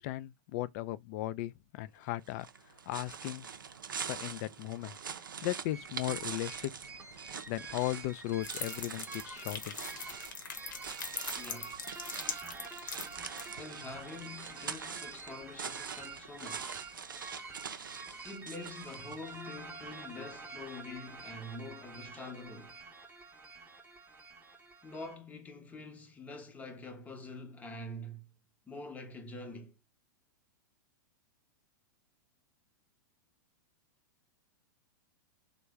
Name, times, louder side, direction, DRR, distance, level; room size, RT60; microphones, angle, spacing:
voice 1, 0.0-2.5 2.9-3.5 4.1-5.0 5.4-6.7 7.5-9.7, left 16 dB, 50° left, 0.3 m, -36 dB
sound 1, 2.3-19.5, right 7 dB, 90° right, 0.4 m, -44 dB
sound 2, 5.7-25.2, right 4 dB, 15° right, 0.7 m, -48 dB
sound 3, 8.4-13.5, left 6 dB, 75° left, 0.9 m, -41 dB
voice 2, 11.3-11.8 13.6-16.8 18.2-22.8 24.8-28.3 28.7-29.8, left 2 dB, 15° left, 0.8 m, -46 dB
3.3 x 2.1 x 3.4 m
hypercardioid pair, 110°, 11 cm